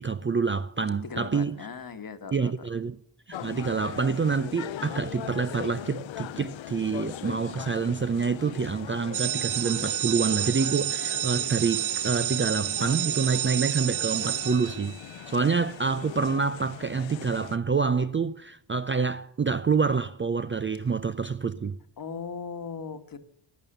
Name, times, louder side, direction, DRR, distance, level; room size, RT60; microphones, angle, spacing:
voice 1, 0.0-1.5 2.3-2.9 3.3-15.0 15.3-21.8, right 5 dB, 25° right, 0.5 m, -27 dB
voice 2, 1.0-2.7 22.0-23.2, left 5 dB, 45° left, 1.4 m, -38 dB
sound 1, 3.3-17.6, left 12 dB, 70° left, 0.7 m, -40 dB
sound 2, 9.1-15.3, right 13 dB, 90° right, 0.7 m, -30 dB
15.0 x 11.0 x 6.6 m
wide cardioid pair, 125°, 48 cm